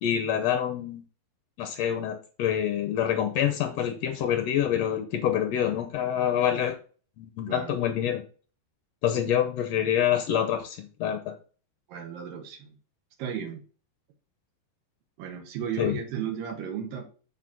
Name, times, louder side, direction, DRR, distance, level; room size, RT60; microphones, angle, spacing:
voice 1, 0.0-1.0 1.6-6.7 7.2-8.2 9.0-11.3 15.8-16.0, left 10 dB, 80° left, 7 dB, 1.5 m, -26 dB
voice 2, 7.5-7.8 11.9-12.8 13.2-13.6 15.2-17.0, right 8 dB, 80° right, 3 dB, 3.0 m, -34 dB
8.2 x 4.0 x 6.1 m, 0.39 s
omnidirectional pair, 4.0 m